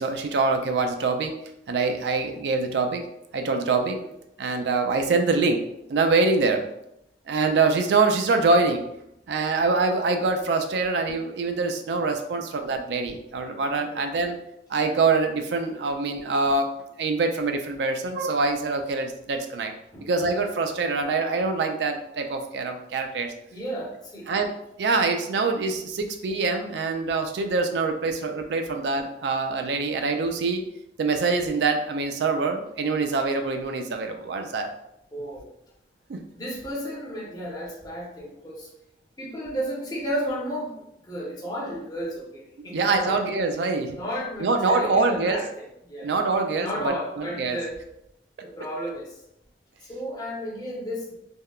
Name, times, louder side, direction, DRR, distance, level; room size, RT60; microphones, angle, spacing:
voice 1, 0.0-1.3 1.7-3.0 3.3-4.0 4.4-5.6 5.9-6.7 7.3-8.8 9.3-14.4 14.7-16.7 17.0-19.7 20.0-23.3 24.3-30.6 31.0-34.7 36.1-36.2 42.7-44.0 44.4-45.4 46.0-47.6, right 3 dB, 70° right, 5 dB, 0.4 m, -24 dB
voice 2, 23.5-24.3 35.1-35.5 36.3-38.7 39.2-43.2 43.9-46.1 46.6-47.8 48.4-49.2 49.8-51.1, equal, 25° left, -4 dB, 0.7 m, -33 dB
3.5 x 2.1 x 2.3 m, 0.80 s
head